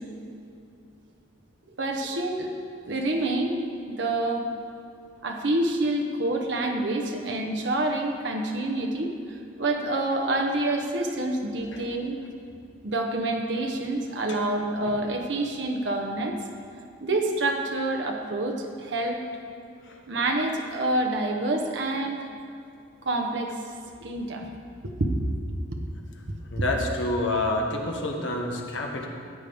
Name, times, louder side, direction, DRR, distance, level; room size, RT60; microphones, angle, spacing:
voice 1, 1.8-2.5 2.8-4.5 5.2-9.1 9.6-12.2 12.8-16.4 17.0-19.2 20.1-22.3 23.0-23.5 24.0-24.5 24.8-25.3, right 2 dB, 65° right, 2 dB, 0.9 m, -27 dB
voice 2, 26.5-29.1, left 2 dB, 70° left, 1 dB, 1.3 m, -28 dB
14.5 x 8.5 x 3.5 m, 2.5 s
head